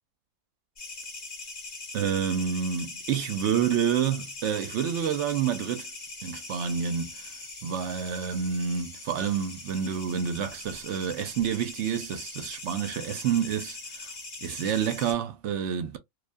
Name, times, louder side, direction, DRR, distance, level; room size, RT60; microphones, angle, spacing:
sound 1, 0.8-15.1, left 3 dB, 45° left, 1.1 m, -41 dB
voice 1, 1.9-5.9 6.2-7.3 7.6-14.1 14.4-16.0, right 8 dB, 70° right, 0.8 m, -28 dB
2.5 x 2.2 x 2.4 m
omnidirectional pair, 1.3 m